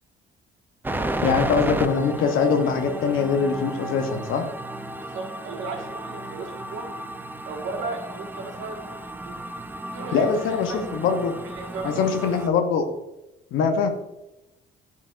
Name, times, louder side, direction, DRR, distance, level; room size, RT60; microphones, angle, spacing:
sound 1, 0.8-12.5, right 2 dB, 10° right, 0.4 m, -33 dB
voice 1, 1.2-4.5 10.1-11.3 11.8-12.9 13.5-13.9, left 5 dB, 85° left, 5 dB, 0.7 m, -22 dB
voice 2, 5.0-6.9 7.4-8.8 9.2-9.3 9.9-10.8 11.4-12.4, right 3 dB, 75° right, 0 dB, 1.5 m, -35 dB
9.3 x 4.8 x 2.4 m, 0.93 s
cardioid pair, 90°, 20 cm